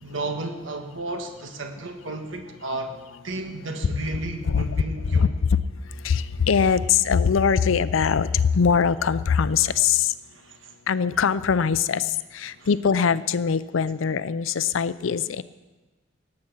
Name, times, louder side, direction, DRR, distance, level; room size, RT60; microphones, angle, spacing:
voice 1, 0.0-2.9 3.2-5.3 10.3-10.7 12.5-12.7, right 2 dB, 75° right, 5 dB, 1.4 m, -33 dB
voice 2, 4.4-4.8 5.1-5.3 6.0-10.1 10.9-12.0 12.3-15.4, left 6 dB, 80° left, 16 dB, 0.5 m, -22 dB
18.5 x 8.6 x 6.0 m, 1.2 s
head